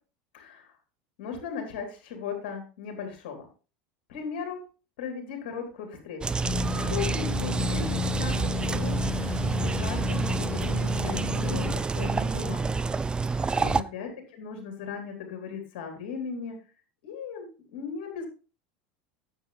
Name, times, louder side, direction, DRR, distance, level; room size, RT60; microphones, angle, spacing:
voice 1, 0.3-0.7 1.2-3.5 4.1-4.6 5.0-6.4 6.8-12.9 13.2-16.6 17.0-18.3, left 6 dB, 70° left, 3 dB, 3.6 m, -37 dB
sound 1, 6.2-13.8, right 4 dB, 15° right, 0.4 m, -28 dB
sound 2, 6.4-11.8, left 9 dB, 40° left, 1.3 m, -33 dB
9.7 x 8.0 x 3.4 m, 0.34 s
hypercardioid pair, 100°, 5 cm